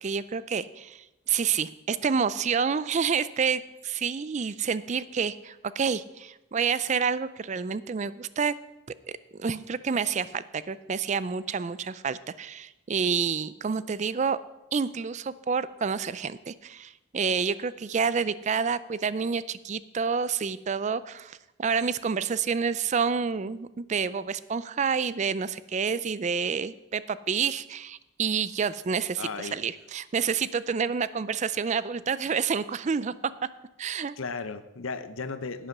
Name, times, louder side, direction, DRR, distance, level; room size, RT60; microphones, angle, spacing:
voice 1, 0.0-8.5 9.3-14.4 14.7-33.1 33.8-34.2, right 6 dB, 35° right, 17 dB, 0.4 m, -28 dB
voice 2, 29.2-29.6 34.2-35.7, left 4 dB, 85° left, 12 dB, 0.8 m, -35 dB
11.0 x 8.3 x 6.0 m, 0.99 s
head